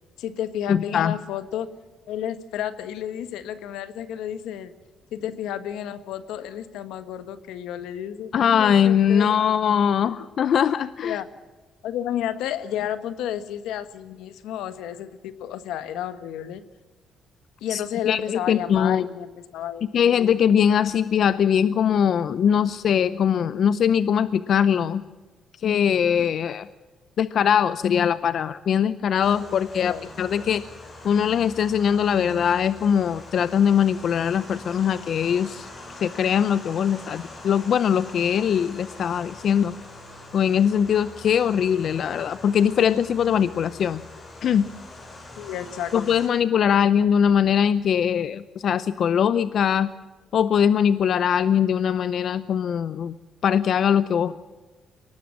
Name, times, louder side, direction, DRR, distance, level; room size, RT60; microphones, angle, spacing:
voice 1, 0.2-1.7 2.1-4.7 5.1-9.4 11.0-11.3 11.8-16.6 17.6-20.2 26.2-26.3 29.4-29.5 29.8-30.1 45.4-46.1, left 10 dB, 85° left, 12 dB, 1.4 m, -32 dB
voice 2, 0.7-1.2 8.3-11.2 17.7-19.1 19.9-25.0 25.6-26.7 27.2-30.6 31.0-35.7 36.0-39.7 40.3-44.0 44.4-44.7 45.9-49.9 50.3-53.1 53.4-54.4, left 8 dB, 60° left, 15 dB, 0.6 m, -21 dB
sound 1, 29.2-46.3, left 2 dB, 40° left, 7.3 m, -43 dB
23.0 x 18.5 x 7.5 m, 1.3 s
cardioid pair, 85°, 0 cm